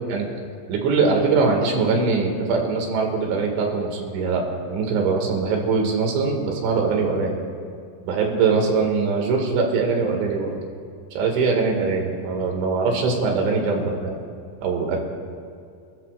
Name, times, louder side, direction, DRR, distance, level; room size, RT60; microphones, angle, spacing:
voice 1, 0.7-4.4 4.7-7.4 8.0-10.7 11.2-14.2 14.6-15.0, right 4 dB, 85° right, 1 dB, 4.4 m, -22 dB
29.5 x 13.5 x 2.5 m, 2.3 s
omnidirectional pair, 5.2 m